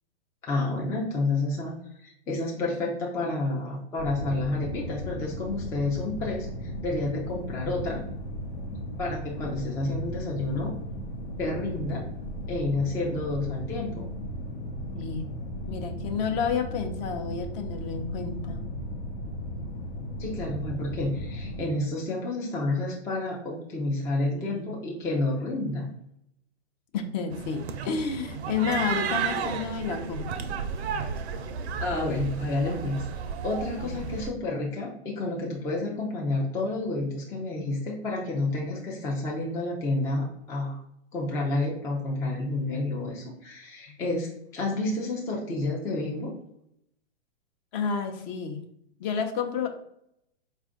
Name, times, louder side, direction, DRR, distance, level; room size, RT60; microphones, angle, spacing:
voice 1, 0.4-8.0 9.0-10.7 11.4-12.0 12.5-14.0 20.2-25.9 31.8-33.1 33.4-40.8 41.1-46.3, left 2 dB, 10° left, -2 dB, 0.4 m, -30 dB
sound 1, 4.0-21.6, equal, 70° left, 0.8 m, -36 dB
voice 2, 15.0-15.3 15.7-18.6 24.3-24.7 26.9-30.5 33.8-34.1 47.7-48.6 49.0-49.7, left 6 dB, 40° left, 5 dB, 0.7 m, -30 dB
sound 2, 27.3-34.3, right 6 dB, 70° right, 0.6 m, -33 dB
4.3 x 2.5 x 3.6 m, 0.75 s
hypercardioid pair, 120°, 34 cm